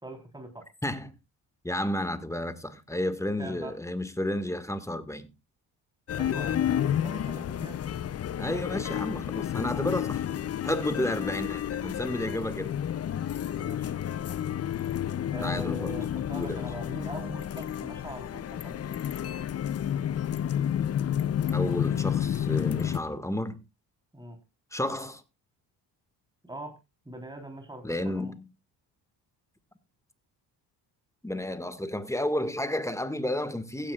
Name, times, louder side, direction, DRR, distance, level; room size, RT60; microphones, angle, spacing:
voice 1, 0.0-0.7 3.4-3.7 6.1-7.8 10.9-11.5 13.5-14.0 15.3-18.8 24.1-24.4 26.4-26.7 27.1-28.3, right 1 dB, 10° right, 3.6 m, -42 dB
voice 2, 0.8-1.1 1.6-5.3 8.4-10.2 10.6-12.8 15.4-15.9 16.4-16.6 21.5-23.6 24.7-25.2 27.8-28.5 31.2-33.9, left 1 dB, 5° left, 1.7 m, -31 dB
sound 1, 6.1-23.0, left 10 dB, 35° left, 0.5 m, -30 dB
16.0 x 9.9 x 2.4 m
hypercardioid pair, 55°, 48 cm